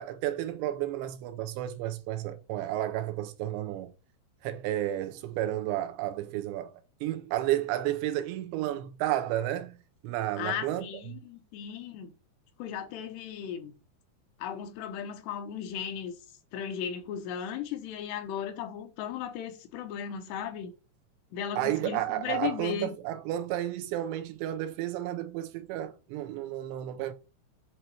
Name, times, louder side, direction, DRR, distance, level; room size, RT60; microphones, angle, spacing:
voice 1, 0.0-3.9 4.4-6.7 7.0-9.8 10.0-10.9 21.6-27.1, right 13 dB, 85° right, 3.0 m, -32 dB
voice 2, 10.4-12.1 12.6-13.7 14.4-16.2 16.5-20.7 21.3-22.9, left 9 dB, 80° left, 3.0 m, -36 dB
8.1 x 2.9 x 5.9 m
omnidirectional pair, 5.2 m